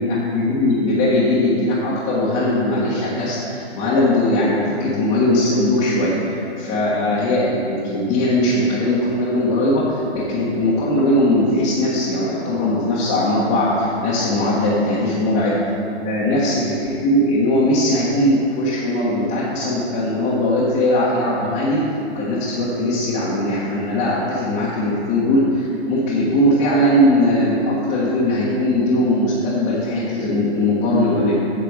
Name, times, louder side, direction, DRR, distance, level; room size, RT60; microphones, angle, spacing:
voice 1, 0.0-15.5 16.0-21.8 22.1-31.3, left 1 dB, 25° left, -8 dB, 1.4 m, -19 dB
8.8 x 6.6 x 6.5 m, 2.7 s
hypercardioid pair, 145°, 33 cm